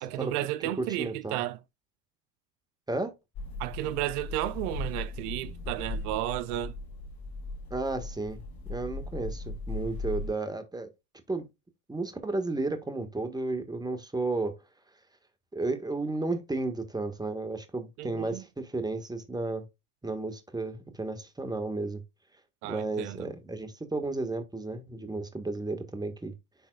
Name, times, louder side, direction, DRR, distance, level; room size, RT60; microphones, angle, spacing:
voice 1, 0.0-1.6 3.6-6.7 18.0-18.4 22.6-23.3, right 14 dB, 75° right, 0.7 m, -33 dB
voice 2, 0.8-1.4 2.9-3.1 7.7-8.4 8.7-10.9 11.3-11.5 11.9-14.5 15.5-19.6 20.0-22.0 22.7-26.3, right 2 dB, 10° right, 1.5 m, -33 dB
sound 1, 3.3-10.3, left 2 dB, 50° left, 2.9 m, -38 dB
10.5 x 4.0 x 2.3 m
supercardioid pair, 90°, 46 cm